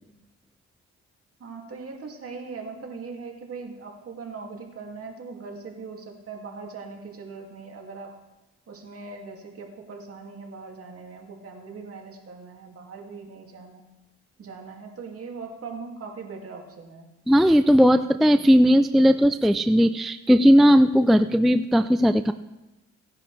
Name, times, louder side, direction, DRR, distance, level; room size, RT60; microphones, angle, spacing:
voice 1, 1.4-8.1 8.7-13.8 14.4-17.1, right 4 dB, 50° right, 1 dB, 2.5 m, -40 dB
voice 2, 17.3-22.3, equal, ahead, 10 dB, 0.3 m, -17 dB
17.5 x 10.5 x 3.3 m, 1.0 s
cardioid pair, 90°, 30 cm